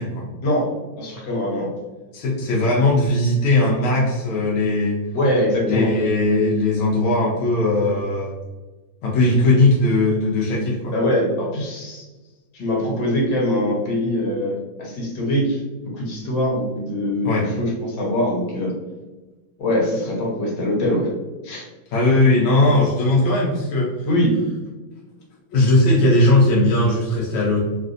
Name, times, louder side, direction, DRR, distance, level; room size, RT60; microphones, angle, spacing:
voice 1, 0.4-1.7 5.1-5.9 10.9-12.1 12.5-15.6 15.9-18.7 19.6-21.1 21.4-21.7 24.1-24.3, left 1 dB, 65° left, -2 dB, 1.6 m, -22 dB
voice 2, 2.1-5.0 5.7-8.3 9.0-10.9 16.0-16.1 17.2-17.5 21.9-23.9 25.5-27.6, left 2 dB, 85° left, -4 dB, 1.4 m, -18 dB
3.6 x 2.5 x 2.4 m, 1.2 s
omnidirectional pair, 2.2 m